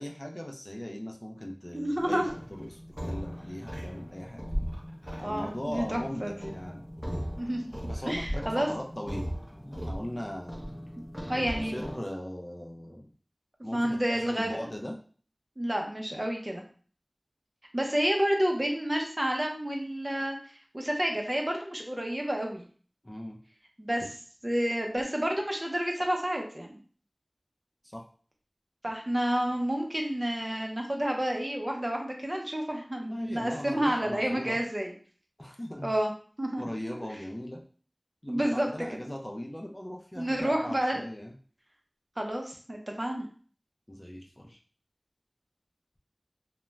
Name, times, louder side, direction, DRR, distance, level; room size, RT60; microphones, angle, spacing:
voice 1, 0.0-4.5 5.2-6.8 7.9-10.6 11.1-11.4 11.7-13.1 13.6-14.9 23.0-23.4 27.9-28.0 33.1-34.6 35.4-35.9 36.6-37.6 38.2-41.3 43.9-44.6, left 1 dB, 30° left, 0 dB, 0.5 m, -39 dB
voice 2, 1.7-2.3 5.2-6.5 7.4-7.6 8.1-8.7 11.3-11.8 13.7-14.6 15.6-16.6 17.7-20.4 20.7-22.6 23.8-24.2 24.4-26.8 28.8-34.9 35.8-36.1 36.4-36.6 36.9-37.1 38.3-38.9 40.2-41.0 42.2-43.3, right 1 dB, 35° right, 1 dB, 0.6 m, -30 dB
sound 1, 2.0-12.0, equal, 5° left, 0.8 m, -38 dB
2.4 x 2.1 x 3.1 m, 0.43 s
wide cardioid pair, 40°, 0 cm